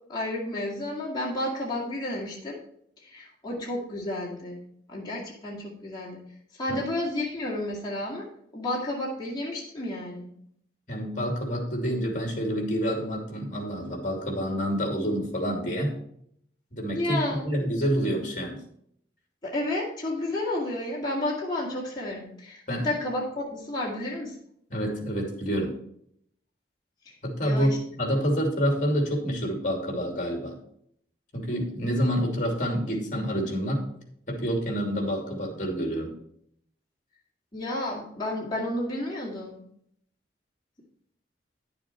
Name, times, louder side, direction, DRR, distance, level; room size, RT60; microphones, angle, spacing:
voice 1, 0.1-2.6 3.0-4.6 4.9-6.2 6.6-8.3 8.5-10.3 16.8-17.4 19.4-24.4 27.1-27.2 27.4-27.8 31.8-31.9 37.5-39.6, left 1 dB, 25° left, -5 dB, 2.3 m, -31 dB
voice 2, 10.9-16.0 16.7-18.6 22.7-22.9 24.7-25.7 27.2-30.6 31.3-33.8 34.3-36.2, equal, 45° left, 2 dB, 2.7 m, -28 dB
10.5 x 7.0 x 4.4 m, 0.68 s
head